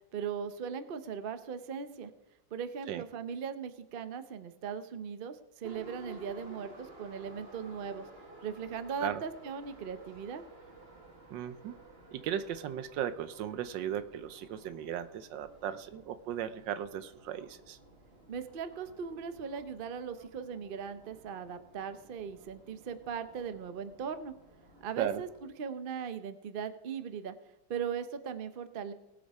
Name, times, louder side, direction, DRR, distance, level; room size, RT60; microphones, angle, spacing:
voice 1, 0.1-2.1 2.5-8.1 8.4-10.4 18.3-24.3 24.8-27.3 27.7-28.9, right 7 dB, 50° right, 10 dB, 0.6 m, -39 dB
Subway metro underground, 5.6-25.5, right 2 dB, 35° right, 2.0 m, -55 dB
voice 2, 11.3-11.8 12.1-17.8 25.0-25.2, right 10 dB, 80° right, 13 dB, 1.4 m, -36 dB
19.0 x 7.4 x 4.8 m, 0.98 s
omnidirectional pair, 2.0 m